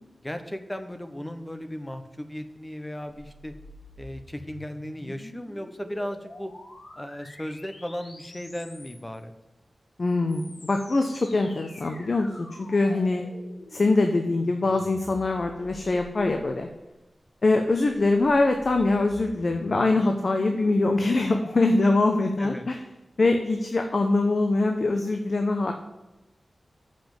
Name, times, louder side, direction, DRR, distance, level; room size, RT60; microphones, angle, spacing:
voice 1, 0.2-3.5 4.0-6.5 7.0-9.3 22.4-22.6, equal, 15° left, 7 dB, 1.0 m, -36 dB
sound 1, 3.1-9.2 10.1-16.7 17.7-21.6, left 1 dB, 75° left, 2.6 m, -47 dB
voice 2, 10.0-13.2 13.7-16.7 17.4-22.8 23.2-25.7, left 2 dB, 55° left, 5 dB, 0.9 m, -23 dB
7.7 x 5.6 x 7.2 m, 1.1 s
wide cardioid pair, 90°, 0 cm